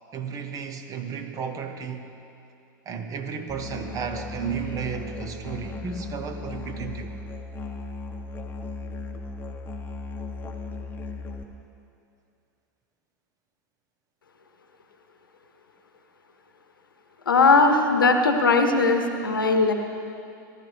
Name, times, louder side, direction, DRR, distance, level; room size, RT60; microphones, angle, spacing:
voice 1, 0.1-2.1 2.9-7.1, right 6 dB, 30° right, 7 dB, 1.1 m, -33 dB
Musical instrument, 3.5-11.4, left 3 dB, 20° left, 1.1 m, -36 dB
voice 2, 17.3-19.7, left 3 dB, 85° left, 5 dB, 1.1 m, -19 dB
18.0 x 12.5 x 3.5 m, 2.6 s
hypercardioid pair, 90°, 11 cm